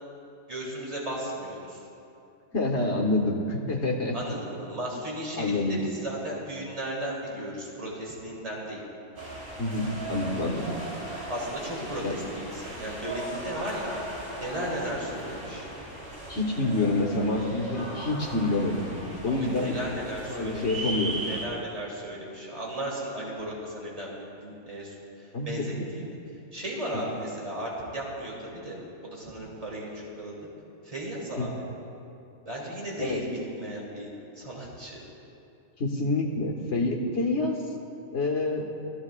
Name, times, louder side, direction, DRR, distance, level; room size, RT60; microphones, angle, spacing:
voice 1, 0.5-1.9 4.1-8.8 11.3-13.9 14.4-15.7 19.3-20.9 21.2-26.1 26.5-28.8 29.0-30.3 30.8-31.5 32.4-34.1 34.3-35.1, right 1 dB, 25° right, -4 dB, 2.7 m, -35 dB
voice 2, 2.5-4.2 5.4-5.8 9.6-10.7 11.9-12.2 16.3-18.9 19.2-19.8 20.3-21.2 25.3-25.8 31.4-31.5 33.0-33.2 35.8-37.6 38.1-38.7, left 2 dB, 50° left, -1 dB, 1.8 m, -27 dB
sound 1, 9.2-21.5, right 1 dB, 90° right, 3.8 m, -38 dB
21.0 x 14.5 x 2.4 m, 2.7 s
omnidirectional pair, 1.5 m